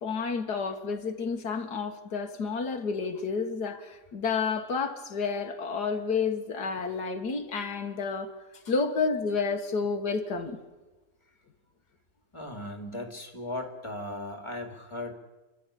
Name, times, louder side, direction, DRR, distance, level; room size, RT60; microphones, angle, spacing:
voice 1, 0.0-10.6, left 5 dB, 75° left, 2.0 m, -30 dB
voice 2, 12.3-15.1, left 1 dB, 15° left, 2.5 m, -37 dB
28.0 x 12.5 x 9.9 m
omnidirectional pair, 1.8 m